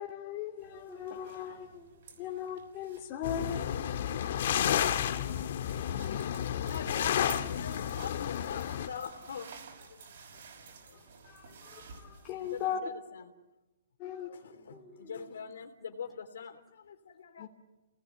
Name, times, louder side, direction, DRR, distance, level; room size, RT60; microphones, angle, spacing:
voice 1, 0.0-1.7 2.2-3.6 5.9-6.2 11.3-12.8 14.0-14.3 17.4-17.5, left 9 dB, 25° left, -1 dB, 2.6 m, -38 dB
sound 1, 0.6-12.7, right 5 dB, 55° right, 5.9 m, -53 dB
voice 2, 0.9-2.4 14.0-15.3, equal, ahead, -3 dB, 3.4 m, -54 dB
sound 2, 3.2-8.9, left 10 dB, 50° left, 1.6 m, -31 dB
voice 3, 5.4-9.5 9.8-11.0 12.4-13.3 14.2-17.5, left 6 dB, 75° left, 5 dB, 3.3 m, -44 dB
29.0 x 19.0 x 9.4 m, 1.1 s
hypercardioid pair, 170°, 0 cm